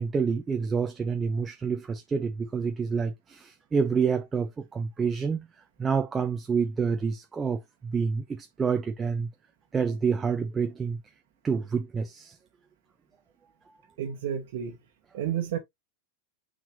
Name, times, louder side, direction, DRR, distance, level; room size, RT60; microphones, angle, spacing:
voice 1, 0.0-5.5 5.8-9.3 9.7-11.0 11.4-12.4, right 5 dB, 15° right, 0.6 m, -28 dB
voice 2, 14.0-14.8 15.1-15.6, right 9 dB, 55° right, 1.3 m, -31 dB
6.6 x 5.8 x 3.0 m
figure-of-eight pair, 90°, 0 cm